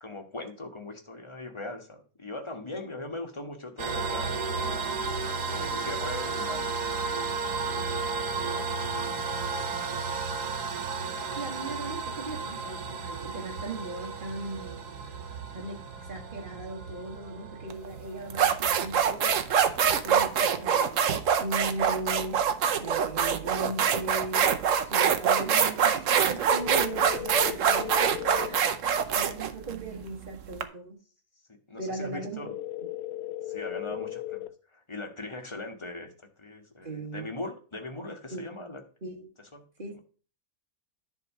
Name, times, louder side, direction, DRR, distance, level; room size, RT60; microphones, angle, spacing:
voice 1, 0.0-7.4 8.2-9.2 9.5-10.0 28.2-29.2 31.7-32.5 33.4-38.8 39.5-39.6, left 2 dB, 20° left, 4 dB, 1.4 m, -41 dB
sound 1, 3.8-20.9, right 4 dB, 80° right, 1.8 m, -34 dB
voice 2, 11.4-14.8 15.5-19.3 20.0-22.5 22.8-24.5 24.8-28.7 29.1-31.0 31.8-32.6 36.8-37.3 38.3-38.5 39.0-39.3 39.8-40.0, right 2 dB, 35° right, 0 dB, 2.1 m, -38 dB
sound 2, 17.7-17.9 18.3-30.6, right 7 dB, 60° right, 1.1 m, -24 dB
sound 3, 26.5-28.5 32.5-34.5, left 15 dB, 75° left, 1.1 m, -36 dB
10.5 x 3.7 x 7.2 m, 0.39 s
omnidirectional pair, 1.6 m